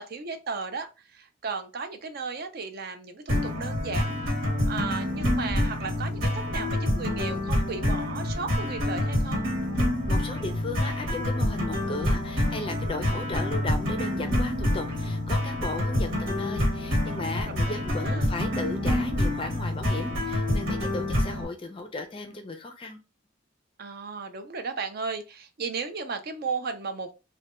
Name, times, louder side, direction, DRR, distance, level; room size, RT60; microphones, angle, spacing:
voice 1, 0.0-4.1 4.7-9.4 17.7-18.3 23.8-27.1, right 4 dB, 45° right, 8 dB, 0.4 m, -35 dB
sound 1, 3.3-21.4, left 1 dB, 70° right, 1.1 m, -27 dB
voice 2, 10.1-23.0, left 2 dB, 25° left, 6 dB, 0.4 m, -36 dB
3.2 x 2.2 x 2.9 m, 0.29 s
head